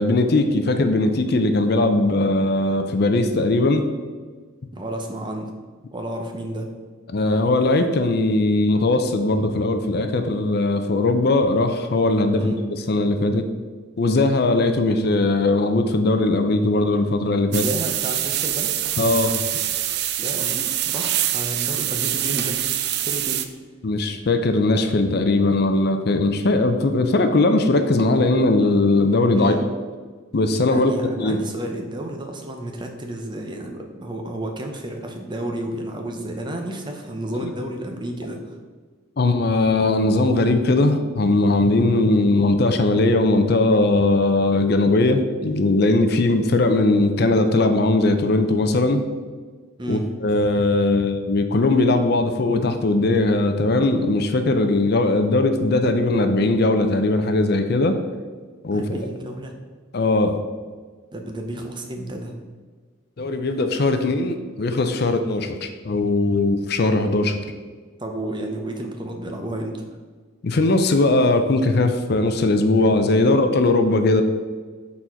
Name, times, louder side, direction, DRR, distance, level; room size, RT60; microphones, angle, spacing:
voice 1, 0.0-3.9 7.1-12.5 12.9-13.5 14.0-17.6 19.0-19.4 23.8-29.6 30.3-30.9 31.2-31.4 39.2-49.0 49.9-58.0 58.6-58.8 59.9-60.4 63.2-67.4 70.4-74.2, left 2 dB, 50° left, 7 dB, 0.5 m, -19 dB
voice 2, 4.7-5.5 5.9-6.7 12.3-12.6 17.5-18.9 20.2-22.6 23.0-23.4 29.3-29.6 30.7-38.6 49.8-50.1 58.7-59.5 61.1-62.4 68.0-69.8 73.0-73.4, right 1 dB, 25° right, 3 dB, 0.7 m, -31 dB
sound 1, 17.5-23.5, right 12 dB, 55° right, 0.4 m, -25 dB
6.9 x 4.2 x 4.4 m, 1.5 s
head